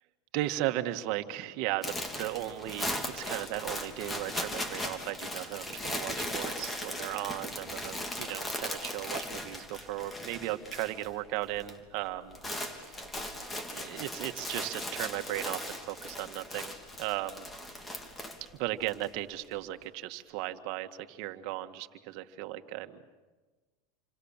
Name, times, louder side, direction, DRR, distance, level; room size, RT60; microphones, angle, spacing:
voice 1, 0.3-13.0 13.7-17.5 18.5-23.0, right 15 dB, 60° right, 8 dB, 1.8 m, -36 dB
sound 1, 1.8-11.1 11.4-11.8 12.1-19.0, left 1 dB, 15° left, 3.4 m, -38 dB
29.0 x 25.5 x 7.5 m, 1.3 s
supercardioid pair, 110°, 0 cm